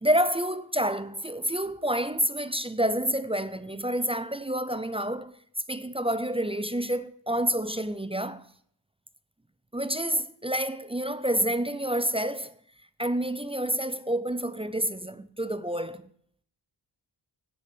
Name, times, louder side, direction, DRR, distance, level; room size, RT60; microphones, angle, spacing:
voice 1, 0.0-5.4 5.7-8.5 9.7-12.5 13.0-16.1, right 1 dB, 15° right, 0.4 m, -28 dB
9.7 x 6.9 x 7.9 m
wide cardioid pair, 95°, 48 cm